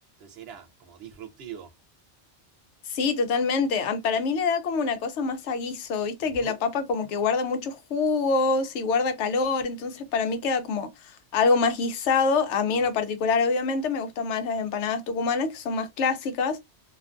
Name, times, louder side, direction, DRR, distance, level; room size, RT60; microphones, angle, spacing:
voice 1, 0.2-1.7 6.2-6.6 12.7-12.8, right 8 dB, 65° right, 0.8 m, -43 dB
voice 2, 2.9-10.9 11.3-16.6, left 4 dB, 85° left, 0.9 m, -25 dB
2.5 x 2.3 x 2.4 m
omnidirectional pair, 1.2 m